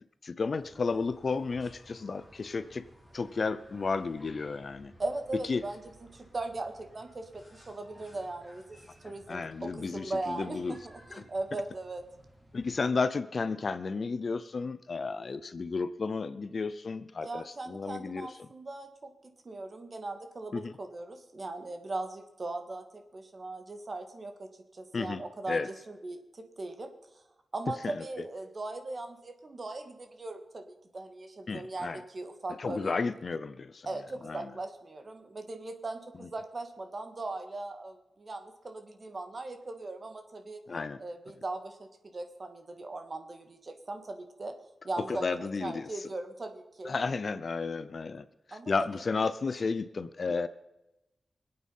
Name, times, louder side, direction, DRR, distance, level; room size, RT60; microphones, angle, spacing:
voice 1, 0.2-2.9 3.1-4.9 5.5-5.6 9.3-10.8 11.1-11.2 12.5-18.5 20.5-20.7 24.9-25.7 27.8-28.0 31.5-32.0 32.6-33.9 34.3-34.5 40.7-41.0 45.1-45.9 46.8-50.5, left 4 dB, 45° left, 14 dB, 0.6 m, -33 dB
sound 1, 0.5-12.8, right 1 dB, ahead, 4.5 m, -57 dB
voice 2, 5.0-12.0 17.2-19.1 19.4-27.2 27.5-30.6 30.9-32.9 33.8-40.6 41.0-44.5 44.8-46.9 48.5-49.3, right 2 dB, 35° right, 6 dB, 1.7 m, -39 dB
24.5 x 8.8 x 5.5 m, 0.94 s
wide cardioid pair, 165°, 0 cm